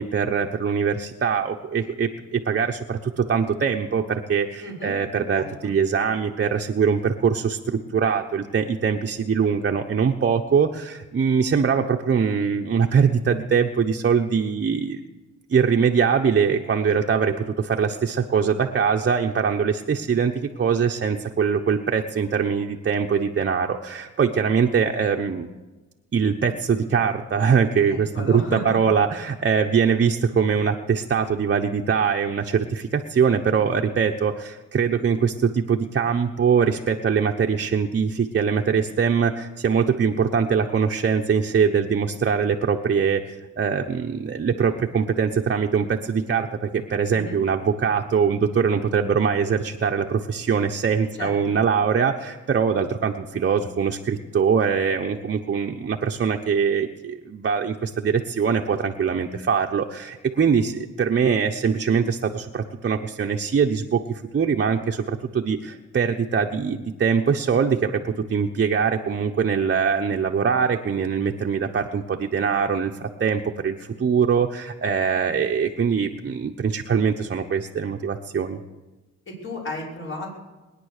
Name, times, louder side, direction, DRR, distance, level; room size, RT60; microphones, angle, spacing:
voice 1, 0.0-15.0 15.5-25.5 26.1-78.6, right 6 dB, 40° right, 2 dB, 1.1 m, -22 dB
voice 2, 4.6-5.0 5.3-5.5 27.9-28.8 47.1-47.4 51.2-51.5 79.3-80.3, left 1 dB, 40° left, -2 dB, 5.8 m, -34 dB
21.5 x 10.0 x 6.7 m, 1.2 s
cardioid pair, 90°, 30 cm